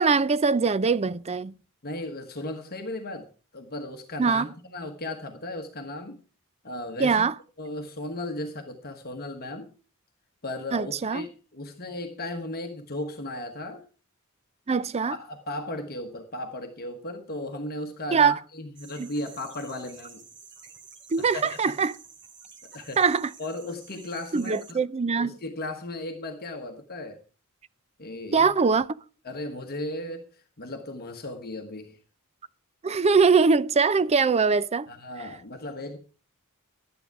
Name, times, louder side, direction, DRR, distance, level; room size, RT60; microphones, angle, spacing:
voice 1, 0.0-1.5 4.2-4.5 7.0-7.3 10.7-11.3 14.7-15.2 18.1-18.4 19.0-19.1 21.1-21.9 23.0-23.3 24.3-25.4 28.3-28.9 32.8-34.9, right 5 dB, 30° right, 0.5 m, -22 dB
voice 2, 1.8-3.3 3.5-6.2 6.6-7.2 7.6-9.7 10.4-13.8 15.1-20.2 21.2-21.8 22.7-23.0 23.4-24.8 25.2-27.2 28.0-28.5 29.2-32.0 34.9-36.0, left 1 dB, 45° left, 1.3 m, -36 dB
sound 1, 18.8-24.7, right 5 dB, 55° right, 2.5 m, -50 dB
12.5 x 10.0 x 4.7 m
head